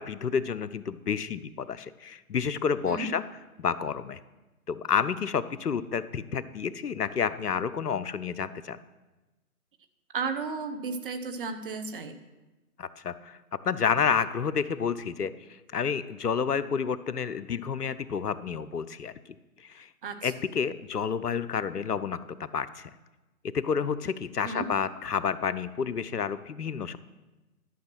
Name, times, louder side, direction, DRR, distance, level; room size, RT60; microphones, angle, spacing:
voice 1, 0.0-3.2 3.6-4.2 4.7-8.8 12.8-13.4 13.6-19.1 19.6-19.9 20.2-22.9 23.4-27.0, left 6 dB, 85° left, 15 dB, 0.7 m, -30 dB
voice 2, 10.1-12.1 20.0-20.3 24.4-24.7, right 4 dB, 35° right, 8 dB, 0.9 m, -33 dB
11.5 x 5.7 x 6.0 m, 1.1 s
figure-of-eight pair, 140°, 45 cm